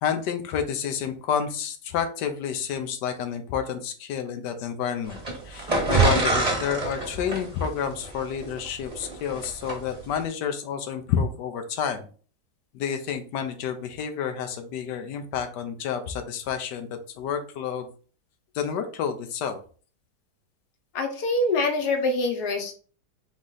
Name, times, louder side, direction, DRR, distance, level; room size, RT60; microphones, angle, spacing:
voice 1, 0.0-5.2 5.5-12.0 12.8-16.9 17.2-17.9 18.6-19.6, left 7 dB, 90° left, 7 dB, 1.3 m, -29 dB
sound 1, 5.1-9.8, right 3 dB, 25° right, 1.1 m, -25 dB
voice 2, 20.9-22.7, left 2 dB, 70° left, 5 dB, 1.4 m, -25 dB
4.0 x 3.1 x 3.8 m, 0.40 s
omnidirectional pair, 1.8 m